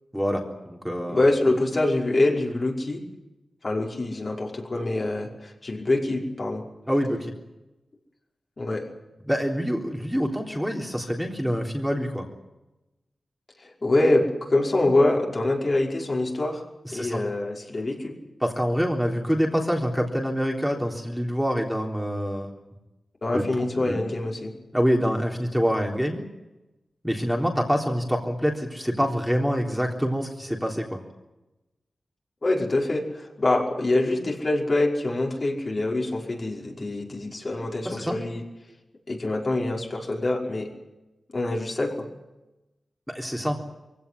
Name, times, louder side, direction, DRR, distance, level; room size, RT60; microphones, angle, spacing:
voice 1, 0.1-1.2 6.9-7.3 9.3-12.2 16.9-17.2 18.4-22.5 23.3-23.4 23.7-24.0 24.7-26.2 27.0-31.0 37.8-38.1 43.1-43.6, equal, ahead, 0 dB, 3.7 m, -26 dB
voice 2, 1.1-3.0 3.6-6.6 8.6-8.8 13.8-16.6 16.9-18.2 23.2-24.5 32.4-38.4 39.1-40.7 41.3-42.1, left 2 dB, 45° left, -1 dB, 5.4 m, -25 dB
22.5 x 17.0 x 9.7 m, 1.0 s
cardioid pair, 65°, 0 cm